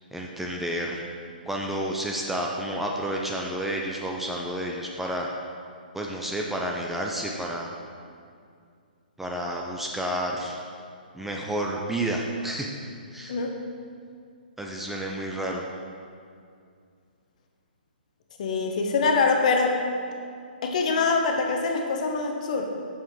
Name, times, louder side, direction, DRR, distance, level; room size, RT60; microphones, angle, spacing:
voice 1, 0.1-5.3 5.9-7.7 9.2-10.5 11.1-13.3 14.6-15.6, right 1 dB, 5° right, -1 dB, 0.5 m, -30 dB
voice 2, 18.4-19.8 20.6-22.6, left 4 dB, 45° left, 3 dB, 1.0 m, -24 dB
7.2 x 6.9 x 3.8 m, 2.3 s
figure-of-eight pair, 125°, 5 cm